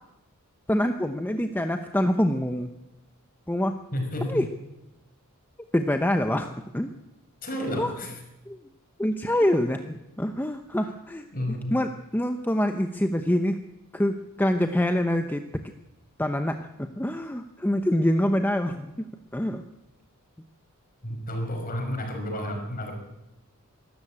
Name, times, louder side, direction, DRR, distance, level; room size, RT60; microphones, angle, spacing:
voice 1, 0.7-2.7 3.5-3.8 4.2-4.5 5.7-6.9 7.7-8.0 8.5-8.6 9.0-13.6 13.9-15.6 16.2-19.1 19.3-19.6, left 1 dB, 10° left, 7 dB, 0.8 m, -26 dB
voice 2, 3.9-4.5 7.4-8.1 11.3-11.7 21.0-22.9, left 1 dB, 40° left, 3 dB, 5.6 m, -31 dB
24.0 x 13.5 x 8.7 m, 0.95 s
head